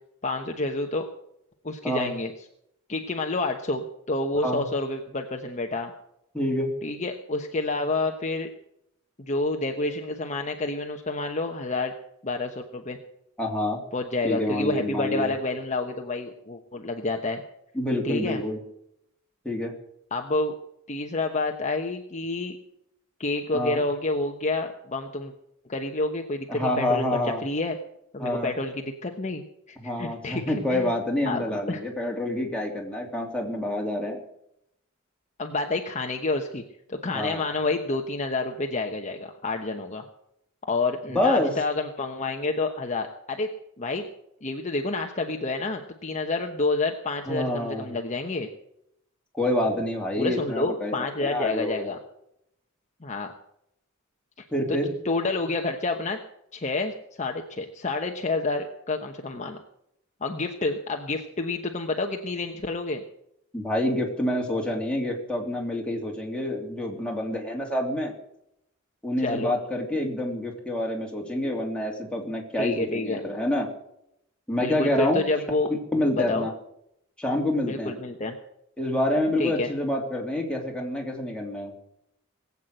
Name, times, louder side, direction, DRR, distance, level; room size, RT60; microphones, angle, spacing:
voice 1, 0.2-1.1 1.6-2.3 2.9-5.9 6.8-8.5 9.2-11.9 12.2-13.0 13.9-17.4 18.0-18.4 20.1-20.6 20.9-22.6 23.2-25.3 25.7-27.0 27.4-27.8 28.1-30.9 31.2-31.8 35.4-36.6 36.9-40.1 40.7-43.5 43.8-44.0 44.4-48.5 50.2-52.0 53.0-53.3 54.7-54.8 55.0-56.2 56.5-59.6 60.2-63.0 69.2-69.5 72.6-73.2 74.6-75.7 76.1-76.5 77.6-78.3 79.4-79.7, left 2 dB, 35° left, 3 dB, 1.1 m, -29 dB
voice 2, 6.3-6.7 13.4-13.8 14.2-15.3 17.7-18.6 19.4-19.7 23.5-23.8 26.5-27.4 28.2-28.5 29.8-34.2 37.1-37.4 41.1-41.6 47.3-47.9 49.3-50.9 51.2-51.9 54.5-54.9 63.5-68.1 69.0-73.7 74.5-75.2 75.9-76.5 77.2-78.0 78.8-81.7, left 1 dB, 5° left, -1 dB, 3.0 m, -27 dB
19.5 x 8.5 x 7.7 m, 0.78 s
head